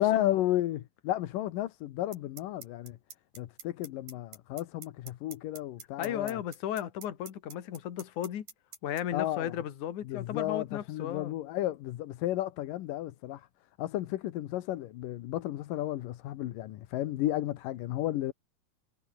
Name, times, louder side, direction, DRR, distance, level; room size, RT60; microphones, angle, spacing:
voice 1, 0.0-3.0 3.4-6.4 9.1-9.5 10.1-13.5 13.8-18.3, left 14 dB, 90° left, 2.7 m, -33 dB
sound 1, 2.1-9.0, right 7 dB, 75° right, 5.4 m, -45 dB
voice 2, 6.0-8.5 8.8-11.3, left 10 dB, 65° left, 3.3 m, -35 dB
omnidirectional pair, 3.8 m